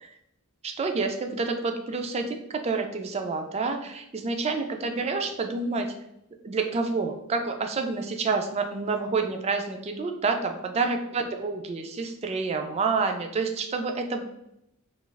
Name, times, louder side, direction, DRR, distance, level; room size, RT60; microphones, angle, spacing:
voice 1, 0.6-5.9 6.4-14.2, right 4 dB, 30° right, 5 dB, 0.3 m, -28 dB
2.4 x 2.3 x 3.8 m, 0.81 s
head